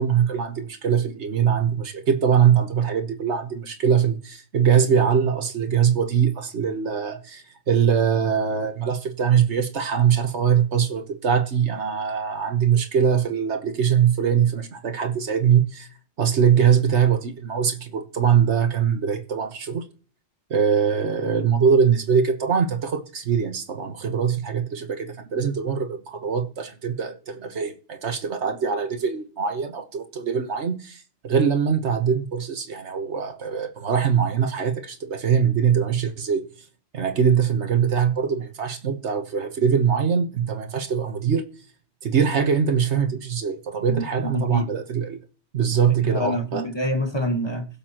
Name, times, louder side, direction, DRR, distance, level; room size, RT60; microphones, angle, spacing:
voice 1, 0.0-15.9 16.2-19.9 20.5-36.4 36.9-41.5 42.0-45.2 45.5-46.6, right 7 dB, 85° right, 1.5 m, -22 dB
voice 2, 43.9-44.7 46.0-47.7, left 1 dB, 25° left, 1.5 m, -27 dB
21.0 x 7.2 x 3.0 m
omnidirectional pair, 1.1 m